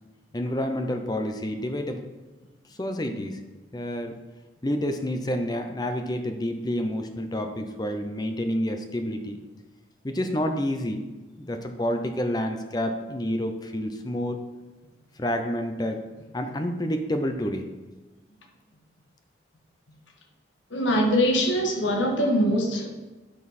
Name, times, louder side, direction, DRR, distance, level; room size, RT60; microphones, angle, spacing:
voice 1, 0.3-2.0 2.7-3.4 3.7-4.2 4.6-9.4 10.0-11.1 11.4-14.4 15.2-16.0 16.3-17.7, equal, 20° left, 6 dB, 0.6 m, -29 dB
voice 2, 20.7-23.0, equal, 90° left, 1 dB, 1.6 m, -23 dB
11.0 x 5.4 x 4.2 m, 1.2 s
head